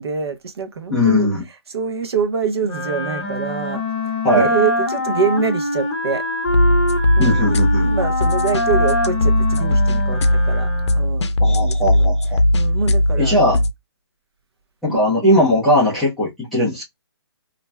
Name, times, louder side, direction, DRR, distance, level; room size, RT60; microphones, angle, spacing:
voice 1, 0.0-1.3 1.7-6.3 7.2-10.7 11.0-12.0 12.5-13.4 14.9-15.0, right 5 dB, 65° right, 0.7 m, -25 dB
voice 2, 0.9-1.4 4.2-4.5 7.2-7.9 11.4-12.4 13.2-13.6 14.8-16.8, left 1 dB, ahead, 0.4 m, -18 dB
Wind instrument woodwind instrument, 2.6-11.2, left 1 dB, 15° left, 0.9 m, -24 dB
sound 1, 6.5-13.7, left 1 dB, 85° left, 0.5 m, -18 dB
2.5 x 2.1 x 3.1 m
hypercardioid pair, 170°, 14 cm